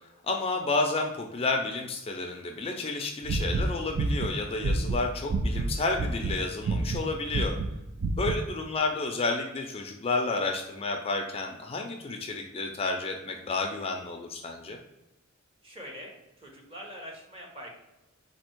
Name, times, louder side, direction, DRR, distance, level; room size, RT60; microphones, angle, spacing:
voice 1, 0.2-7.5 8.2-14.8, left 3 dB, 25° left, 2 dB, 0.4 m, -31 dB
sound 1, 3.2-5.7 6.0-6.4 6.6-7.0 7.3-7.7 8.0-8.4, right 3 dB, 50° right, 0.3 m, -28 dB
voice 2, 15.6-17.7, equal, 25° right, 0 dB, 1.0 m, -44 dB
4.3 x 2.8 x 4.4 m, 0.97 s
head